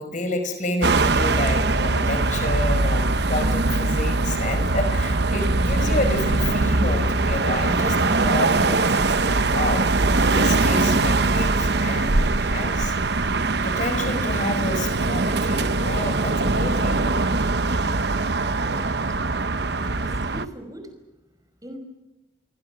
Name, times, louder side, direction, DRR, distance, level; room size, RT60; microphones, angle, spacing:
voice 1, 0.0-9.9 10.2-13.0 13.6-17.2, left 1 dB, 40° left, 7 dB, 5.0 m, -29 dB
sound 1, 0.8-20.5, right 3 dB, 60° right, 0.9 m, -22 dB
voice 2, 18.3-19.2 19.8-20.9 21.6-21.8, right 1 dB, 20° right, 6 dB, 5.4 m, -41 dB
29.0 x 23.0 x 6.0 m, 1.1 s
head